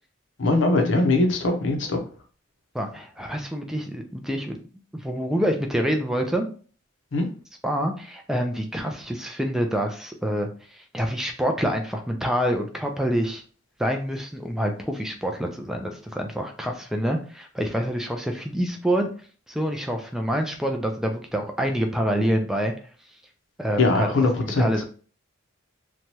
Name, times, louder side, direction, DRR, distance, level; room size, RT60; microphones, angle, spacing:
voice 1, 0.4-2.0 7.1-7.2 23.8-24.7, left 2 dB, 65° left, 3 dB, 0.6 m, -21 dB
voice 2, 2.7-4.6 4.9-6.5 7.6-13.4 13.8-19.1 19.5-22.7 23.6-24.1 24.4-24.8, equal, ahead, 3 dB, 0.3 m, -26 dB
3.0 x 2.2 x 2.7 m, 0.40 s
head